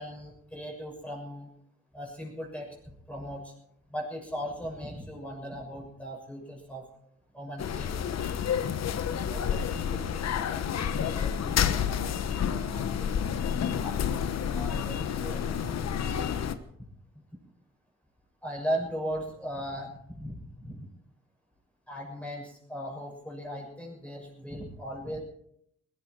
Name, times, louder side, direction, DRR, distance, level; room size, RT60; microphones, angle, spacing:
voice 1, 0.0-1.5 1.9-2.7 3.1-3.5 3.9-6.8 7.3-8.2 18.4-20.9 21.9-25.2, equal, 5° left, -3 dB, 6.7 m, -37 dB
sound 1, 7.6-16.5, left 8 dB, 60° left, 1.2 m, -29 dB
voice 2, 9.3-13.3 13.8-16.5, right 1 dB, 15° right, -2 dB, 6.4 m, -46 dB
20.0 x 14.5 x 4.8 m, 0.73 s
cardioid pair, 90°, 30 cm